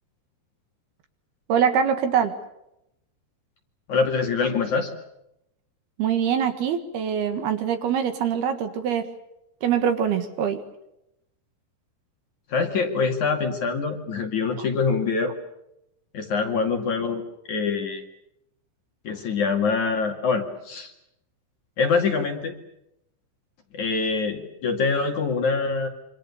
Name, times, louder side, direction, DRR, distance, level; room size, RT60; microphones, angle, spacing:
voice 1, 1.5-2.3 6.0-9.0 9.6-10.6, right 8 dB, 65° right, 8 dB, 3.3 m, -23 dB
voice 2, 3.9-4.9 12.5-15.3 16.1-18.0 19.0-20.9 21.8-22.5 23.7-25.9, left 4 dB, 50° left, 4 dB, 3.2 m, -24 dB
27.5 x 26.0 x 6.9 m, 0.83 s
omnidirectional pair, 5.3 m